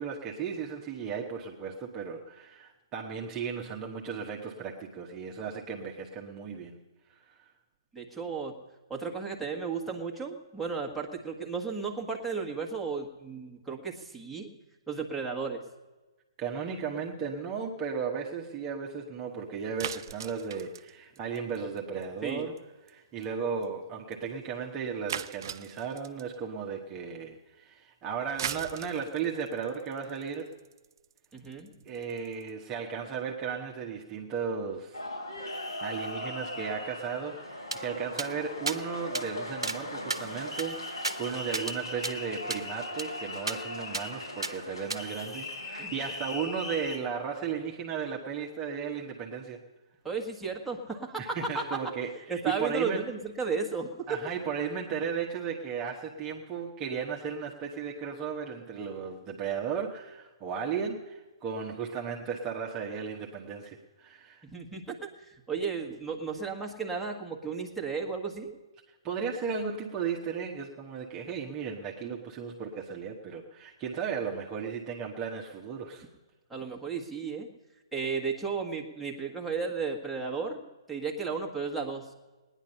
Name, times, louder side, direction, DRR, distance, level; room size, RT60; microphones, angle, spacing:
voice 1, 0.0-6.8 7.1-7.5 16.4-22.5 22.9-30.5 31.8-35.0 35.8-49.6 51.2-53.1 54.1-64.4 69.0-76.0, right 6 dB, 25° right, 0 dB, 1.1 m, -35 dB
voice 2, 7.9-8.5 8.9-14.5 14.9-15.6 22.2-22.5 31.3-31.7 45.8-46.0 50.0-51.8 52.3-54.2 64.4-68.5 76.5-77.5 77.9-80.6 80.9-82.1, right 5 dB, 5° right, -2 dB, 1.5 m, -34 dB
sound 1, 19.8-22.0 22.3-22.6 22.9-23.0 23.2-23.3 23.6-23.7 24.1-24.2 25.1-26.4 28.2-32.5, right 9 dB, 50° right, 0.5 m, -39 dB
sound 2, 34.9-47.0, left 1 dB, 85° left, 3.8 m, -39 dB
sound 3, 37.7-37.8 38.2-38.3 38.7-38.8 39.1-39.3 39.6-39.8 40.1-41.8 42.0-42.1 42.5-42.6 43.0-43.1 43.5-43.6 43.9-44.1 44.4-44.5 44.9-45.0, right 3 dB, 80° right, 0.9 m, -34 dB
19.0 x 10.0 x 5.5 m, 1.2 s
figure-of-eight pair, 125°, 3 cm